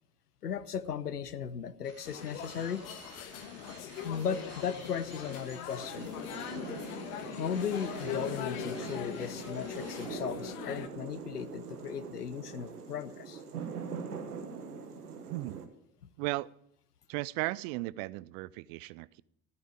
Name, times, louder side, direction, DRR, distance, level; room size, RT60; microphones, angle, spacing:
voice 1, 0.4-2.8 3.9-6.2 7.2-13.4, left 7 dB, 90° left, 16 dB, 0.7 m, -36 dB
sound 1, 1.8-10.1, right 3 dB, 35° right, 3.8 m, -53 dB
sound 2, 2.0-10.9, left 10 dB, 65° left, 1.4 m, -41 dB
sound 3, 5.7-15.7, right 6 dB, 80° right, 1.5 m, -43 dB
voice 2, 15.3-15.7 16.2-16.5 17.1-19.2, right 20 dB, 60° right, 21 dB, 0.6 m, -36 dB
14.0 x 8.8 x 8.5 m, 0.73 s
figure-of-eight pair, 60°, 45 cm